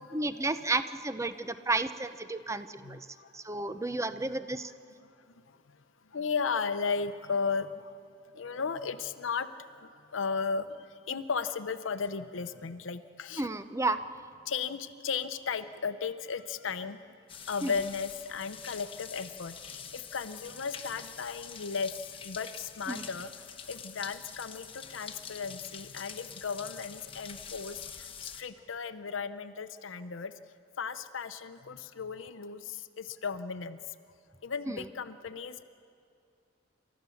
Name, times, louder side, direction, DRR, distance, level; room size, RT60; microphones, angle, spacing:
voice 1, 0.1-3.1 3.3-4.7 13.4-14.0 17.6-17.7 22.9-23.0 34.7-34.8, right 2 dB, 15° right, 11 dB, 0.6 m, -32 dB
voice 2, 6.1-7.7 8.4-9.5 10.1-10.7 11.1-13.5 14.5-17.0 17.5-21.9 22.2-23.3 23.7-27.8 28.2-30.3 30.8-32.6 33.0-33.8 34.4-35.6, left 5 dB, 85° left, 10 dB, 0.7 m, -35 dB
sound 1, 17.3-28.4, left 7 dB, 30° left, 1.1 m, -45 dB
29.0 x 13.5 x 7.1 m, 2.4 s
head